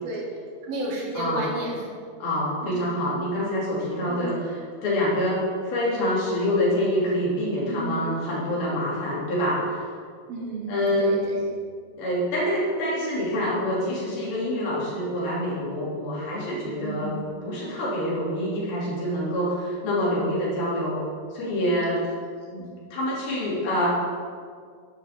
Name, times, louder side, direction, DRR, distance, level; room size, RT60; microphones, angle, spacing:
voice 1, 0.7-1.9 2.6-2.9 4.1-4.4 7.7-8.0 10.3-11.4 14.6-14.8 16.8-17.2, right 2 dB, 85° right, -4 dB, 3.8 m, -32 dB
voice 2, 2.2-9.9 10.7-11.2 11.9-17.2 17.4-21.0 21.3-22.0 22.5-23.9, equal, 80° left, -7 dB, 4.7 m, -26 dB
11.0 x 10.5 x 3.6 m, 2.1 s
omnidirectional pair, 4.2 m